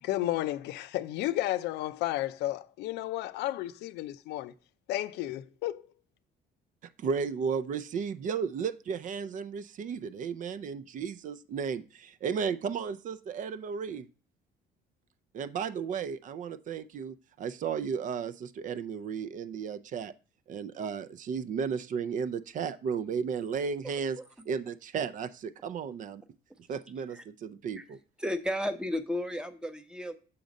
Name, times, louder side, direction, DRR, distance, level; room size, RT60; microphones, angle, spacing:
voice 1, 0.0-4.5 4.9-5.8, left 15 dB, 85° left, 0.5 m, -32 dB
voice 2, 7.0-14.1 15.3-20.1 20.5-24.2 24.5-26.2 26.7-28.0, right 6 dB, 50° right, 0.5 m, -34 dB
voice 3, 23.8-24.2 27.1-27.2 27.8-27.9 28.2-30.1, left 1 dB, 5° right, 0.8 m, -34 dB
7.1 x 3.9 x 5.1 m
cardioid pair, 110°, 17 cm